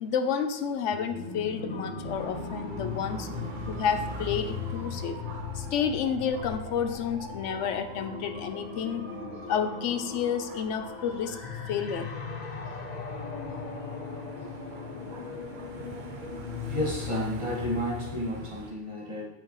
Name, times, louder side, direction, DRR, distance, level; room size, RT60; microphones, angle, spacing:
voice 1, 0.0-3.3 3.7-5.1 5.5-9.0 9.5-11.4 11.7-12.1, left 7 dB, 75° left, 9 dB, 1.0 m, -30 dB
sound 1, 0.9-18.5, left 5 dB, 40° left, 0.9 m, -38 dB
Dog / Motorcycle, 1.9-18.7, right 4 dB, 50° right, 0.7 m, -45 dB
sound 2, 3.1-12.0, equal, 85° right, 1.5 m, -51 dB
voice 2, 16.7-19.3, equal, 25° right, -5 dB, 1.9 m, -32 dB
8.0 x 6.6 x 3.1 m, 0.90 s
omnidirectional pair, 1.3 m